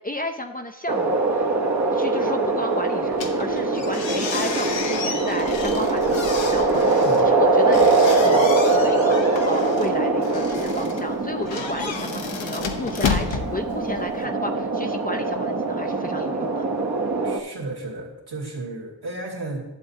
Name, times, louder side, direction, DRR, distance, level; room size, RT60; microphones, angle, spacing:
voice 1, 0.0-1.5 1.9-16.7, left 1 dB, 20° left, 3 dB, 0.5 m, -33 dB
sound 1, 0.9-17.4, right 3 dB, 35° right, 1.0 m, -22 dB
sound 2, 3.1-14.3, left 5 dB, 80° left, 0.9 m, -31 dB
voice 2, 17.2-19.6, right 2 dB, 60° right, -2 dB, 2.4 m, -33 dB
11.5 x 7.6 x 2.8 m, 1.1 s
cardioid pair, 50°, 45 cm